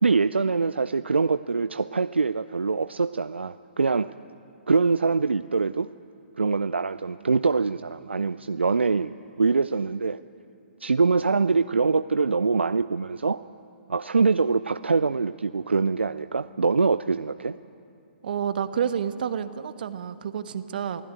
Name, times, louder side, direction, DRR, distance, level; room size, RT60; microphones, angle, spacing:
voice 1, 0.0-4.1 4.7-5.9 6.4-9.1 9.4-10.2 10.8-13.4 13.9-17.6, right 4 dB, 75° right, 13 dB, 0.5 m, -24 dB
voice 2, 18.2-21.0, right 8 dB, 50° right, 11 dB, 1.3 m, -29 dB
28.0 x 17.0 x 9.2 m, 2.6 s
figure-of-eight pair, 120°, 6 cm